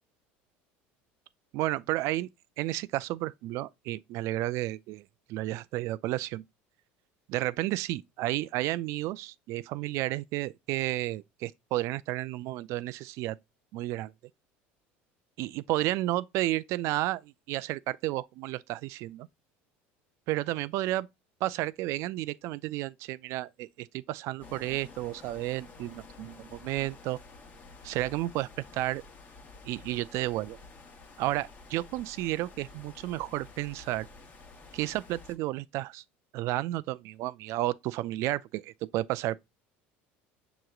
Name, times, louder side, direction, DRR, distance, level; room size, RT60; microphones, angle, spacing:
voice 1, 1.5-2.3 2.6-5.0 5.3-6.4 7.3-13.4 13.7-14.1 15.4-19.3 20.3-21.1 21.4-27.2 27.8-29.0 29.7-30.6 31.2-34.1 34.7-36.0 36.3-39.4, right 16 dB, 60° right, 0.3 m, -32 dB
sound 1, 24.4-35.3, left 3 dB, 30° left, 1.1 m, -50 dB
6.4 x 2.9 x 2.3 m
supercardioid pair, 115°, 5 cm